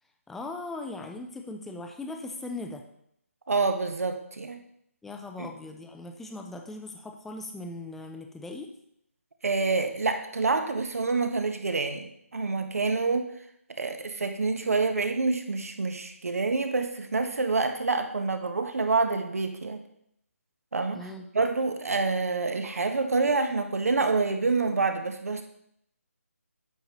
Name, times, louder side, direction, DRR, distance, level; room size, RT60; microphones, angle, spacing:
voice 1, 0.3-2.8 5.0-8.7 20.9-21.3, left 2 dB, 5° left, 4 dB, 0.4 m, -39 dB
voice 2, 3.5-4.6 5.4-5.5 9.4-13.3 13.8-19.8 20.7-21.1 21.3-25.4, right 3 dB, 75° right, 6 dB, 1.1 m, -27 dB
8.9 x 6.9 x 3.0 m, 0.73 s
figure-of-eight pair, 155°, 8 cm